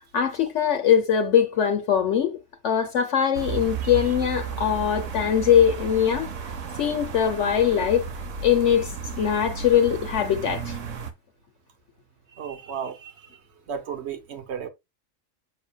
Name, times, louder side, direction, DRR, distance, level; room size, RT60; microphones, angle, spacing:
voice 1, 0.1-2.4 2.6-6.5 6.8-8.0 8.4-10.8, left 9 dB, 70° left, 1.1 m, -22 dB
sound 1, 3.3-11.1, right 6 dB, 90° right, 1.3 m, -34 dB
voice 2, 3.8-4.1 12.3-14.7, right 7 dB, 60° right, 1.2 m, -35 dB
6.7 x 6.1 x 2.3 m
omnidirectional pair, 1.3 m